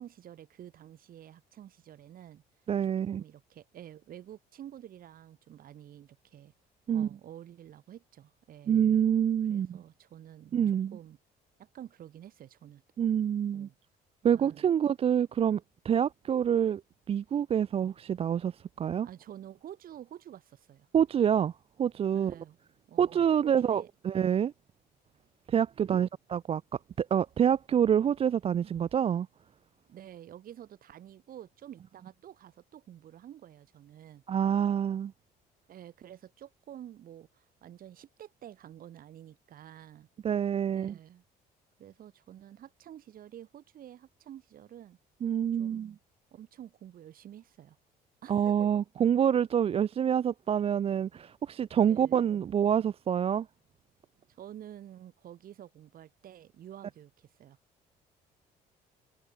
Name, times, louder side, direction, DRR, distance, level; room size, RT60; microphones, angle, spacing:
voice 1, 0.0-2.4 3.1-6.5 6.9-8.8 9.5-10.6 10.9-11.2 11.6-12.8 13.5-13.7 14.3-14.6 19.0-20.9 22.1-22.6 22.9-23.9 25.9-26.0 29.9-34.2 35.7-40.1 40.7-41.2 41.8-45.0 45.6-45.8 46.3-47.8 48.2-48.7 51.9-52.2 54.3-57.6, right 11 dB, 60° right, 4.1 m, -49 dB
voice 2, 2.7-3.2 6.9-7.1 8.7-9.8 10.5-11.0 13.0-13.7 14.2-16.8 17.1-19.1 20.9-21.5 21.8-22.3 23.0-24.5 25.5-26.6 27.0-29.3 34.3-35.1 40.2-40.9 45.2-45.9 48.3-53.5, right 9 dB, 35° right, 0.4 m, -27 dB
cardioid pair, 110°, 17 cm